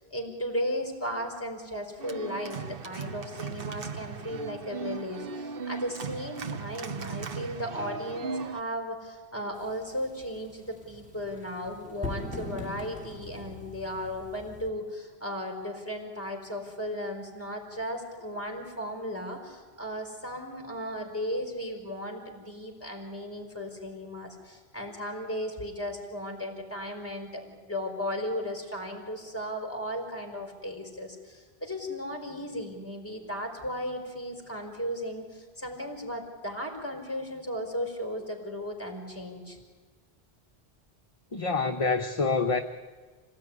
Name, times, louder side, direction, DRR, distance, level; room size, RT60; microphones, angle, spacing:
voice 1, 0.0-39.6, equal, 10° left, 3 dB, 4.7 m, -36 dB
Organ, 2.0-8.6, right 5 dB, 60° right, 1.1 m, -37 dB
sound 1, 9.5-14.7, left 2 dB, 5° right, 3.0 m, -41 dB
voice 2, 41.3-42.6, left 4 dB, 35° left, 5 dB, 0.9 m, -26 dB
26.5 x 18.5 x 9.8 m, 1.4 s
omnidirectional pair, 1.1 m